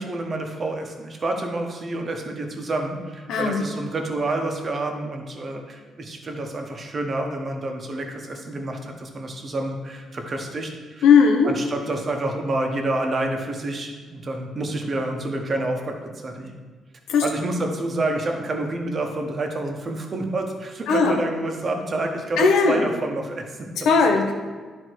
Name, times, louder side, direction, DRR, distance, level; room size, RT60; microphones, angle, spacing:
voice 1, 0.0-11.1 11.4-16.6 17.2-23.7, right 2 dB, 40° right, 3 dB, 1.2 m, -28 dB
voice 2, 11.0-11.5 17.1-17.2 20.9-21.2 22.4-22.8 23.8-24.3, left 5 dB, 80° left, 3 dB, 1.1 m, -17 dB
11.0 x 3.8 x 4.6 m, 1.5 s
cardioid pair, 90°, 0 cm